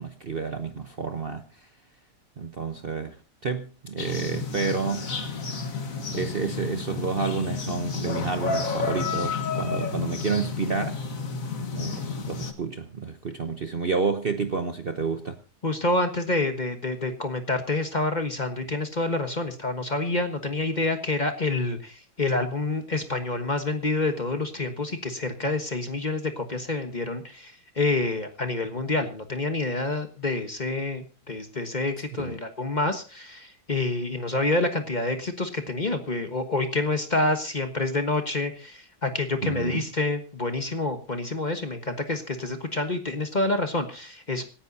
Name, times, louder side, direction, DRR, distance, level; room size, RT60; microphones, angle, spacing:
voice 1, 0.0-1.7 2.4-3.2 3.4-5.1 6.1-11.0 11.7-15.4 32.2-32.4 39.4-39.8, right 5 dB, 40° right, 0.9 m, -30 dB
sound 1, 4.0-12.5, left 4 dB, 55° left, 1.9 m, -31 dB
voice 2, 15.6-44.4, left 2 dB, 30° left, 1.3 m, -28 dB
26.5 x 10.0 x 2.7 m
omnidirectional pair, 1.8 m